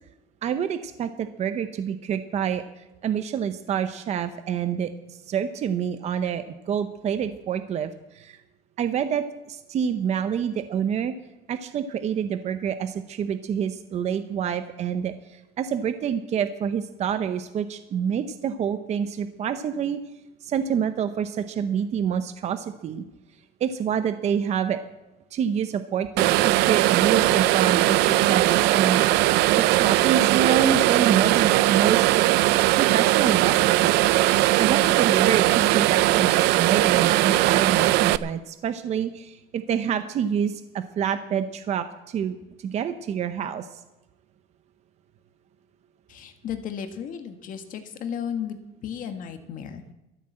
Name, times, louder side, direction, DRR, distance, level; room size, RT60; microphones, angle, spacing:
voice 1, 0.4-2.6 3.0-4.9 5.3-7.9 8.2-8.4 8.8-11.1 11.5-15.1 15.6-20.0 20.4-23.0 23.6-24.8 25.3-32.3 32.8-34.0 34.6-42.4 42.6-43.7, right 8 dB, 40° right, 10 dB, 0.8 m, -27 dB
sound 1, 26.2-38.2, right 17 dB, 80° right, 0.5 m, -20 dB
voice 2, 46.1-49.8, left 8 dB, 50° left, 7 dB, 1.5 m, -34 dB
13.5 x 10.5 x 7.7 m, 0.99 s
cardioid pair, 135°, 17 cm